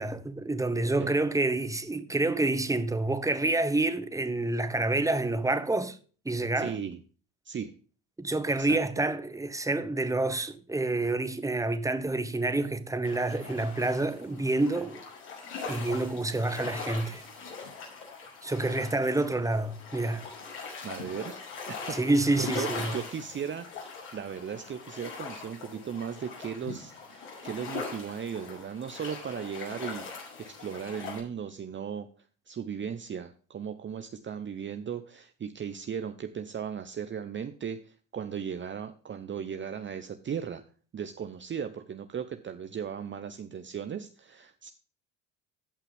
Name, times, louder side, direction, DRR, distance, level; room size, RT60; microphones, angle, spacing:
voice 1, 0.0-6.0 6.2-6.7 8.2-15.0 15.7-17.2 18.4-20.3 21.9-22.9, right 2 dB, 10° right, 1.3 m, -28 dB
voice 2, 0.8-1.2 6.6-7.0 7.4-7.7 8.6-8.8 20.8-30.1 30.4-32.1 32.5-40.6 40.9-44.7, right 7 dB, 30° right, 0.8 m, -37 dB
sound 1, 13.0-31.2, left 4 dB, 70° left, 6.2 m, -41 dB
15.5 x 5.7 x 3.5 m
hypercardioid pair, 75°, 39 cm